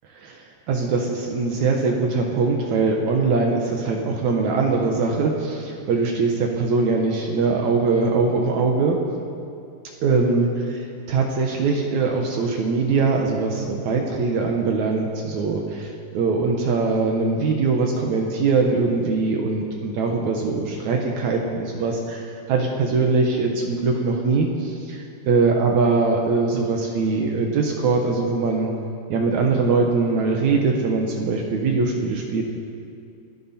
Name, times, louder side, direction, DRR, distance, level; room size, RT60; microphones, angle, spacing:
voice 1, 0.2-9.0 10.0-28.7 29.1-32.4, right 4 dB, 90° right, 1 dB, 1.6 m, -22 dB
28.5 x 11.0 x 4.4 m, 2.5 s
omnidirectional pair, 5.3 m